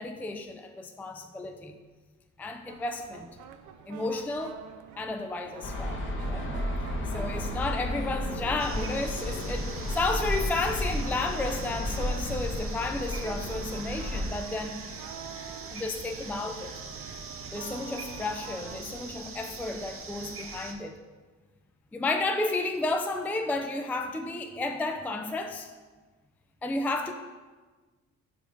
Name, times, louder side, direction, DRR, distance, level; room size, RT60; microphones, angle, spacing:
voice 1, 0.0-1.8 2.4-3.4 3.9-4.6 4.9-6.5 7.1-14.9 15.7-16.7 17.5-21.0 21.9-25.7 26.6-27.1, left 2 dB, 5° left, 6 dB, 0.3 m, -32 dB
sound 1, 2.7-19.0, right 8 dB, 80° right, 0.5 m, -46 dB
sound 2, 5.6-14.3, left 1 dB, 40° left, 1.1 m, -32 dB
sound 3, 8.6-20.7, right 4 dB, 45° right, 0.8 m, -42 dB
5.2 x 4.7 x 5.0 m, 1.4 s
cardioid pair, 90°, 30 cm